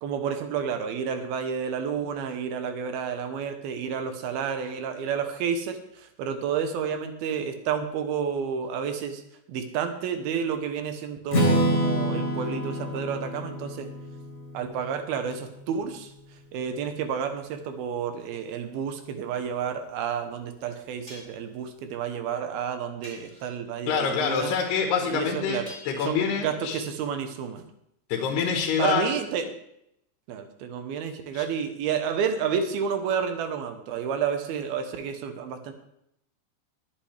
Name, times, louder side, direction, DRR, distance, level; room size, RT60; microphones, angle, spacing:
voice 1, 0.0-9.2 9.5-13.9 14.5-16.1 16.5-24.5 25.1-25.7 26.0-27.6 28.8-29.5 30.3-35.7, right 7 dB, 75° right, 7 dB, 2.7 m, -30 dB
Strum, 11.3-15.2, equal, 40° left, 0.9 m, -27 dB
sound 1, 19.2-19.3 21.1-21.5 23.0-23.7 25.7-26.6, equal, 5° right, 4.6 m, -47 dB
voice 2, 23.9-26.8 28.1-29.1 31.3-31.4, left 6 dB, 80° left, 2 dB, 3.3 m, -26 dB
21.5 x 8.6 x 3.4 m, 0.76 s
omnidirectional pair, 4.7 m